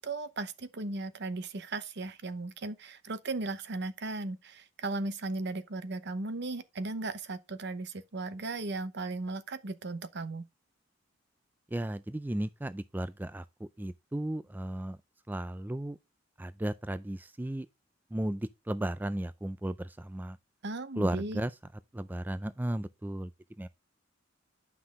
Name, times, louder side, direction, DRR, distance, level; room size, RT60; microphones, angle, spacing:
voice 1, 0.0-10.4 20.6-21.4, right 2 dB, 60° right, 0.9 m, -36 dB
voice 2, 11.7-13.4 13.8-15.0 15.3-16.0 16.4-17.7 18.1-20.4 21.0-21.5 21.9-23.3 23.6-23.7, right 1 dB, 10° right, 0.3 m, -34 dB
9.5 x 6.0 x 3.6 m
head